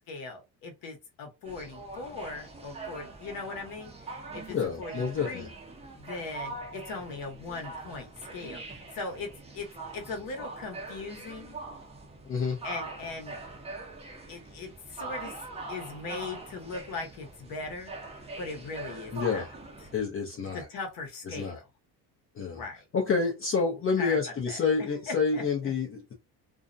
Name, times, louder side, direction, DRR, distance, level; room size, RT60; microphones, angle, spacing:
voice 1, 0.1-5.5 5.9-9.7 9.9-11.6 12.6-13.4 14.3-15.3 15.7-17.9 18.4-19.4 20.5-21.6 22.5-22.8 24.0-24.2 24.5-24.6 25.1-25.4, left 3 dB, 55° left, 1.0 m, -39 dB
sound 1, 1.4-20.0, right 3 dB, 15° right, 0.5 m, -43 dB
voice 2, 4.5-5.5 12.3-12.6 19.1-19.5 19.9-20.7 21.3-21.6 22.4-22.6 22.9-26.1, left 5 dB, 30° left, 0.6 m, -28 dB
2.4 x 2.0 x 2.5 m
cardioid pair, 125°, 41 cm